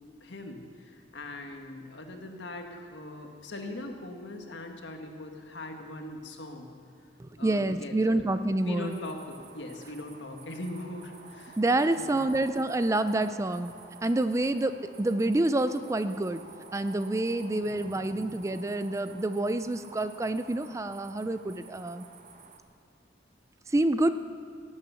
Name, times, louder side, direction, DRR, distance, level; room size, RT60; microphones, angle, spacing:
voice 1, 0.2-6.7 7.4-8.2 8.6-11.6 12.0-12.4, left 2 dB, 75° left, 4 dB, 1.6 m, -41 dB
voice 2, 7.2-9.0 11.6-13.7 14.0-16.4 16.7-22.1 23.7-24.1, right 2 dB, 15° right, 11 dB, 0.4 m, -27 dB
sound 1, 8.9-22.6, right 3 dB, 45° right, 1.0 m, -51 dB
18.0 x 8.9 x 6.9 m, 2.4 s
head